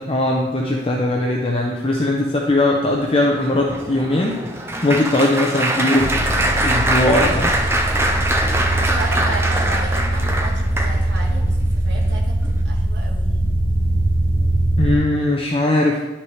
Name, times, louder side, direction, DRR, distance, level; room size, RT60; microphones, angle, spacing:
voice 1, 0.0-4.3 4.8-7.5 14.8-16.0, left 1 dB, 30° left, -1 dB, 0.6 m, -19 dB
Applause, 3.0-11.3 11.9-12.2 12.4-12.6, right 1 dB, 15° right, 0.5 m, -23 dB
sound 1, 6.0-14.9, right 1 dB, 45° left, 1.4 m, -21 dB
voice 2, 8.7-13.4, right 2 dB, 65° right, -2 dB, 1.5 m, -34 dB
10.5 x 5.9 x 3.3 m, 1.1 s
head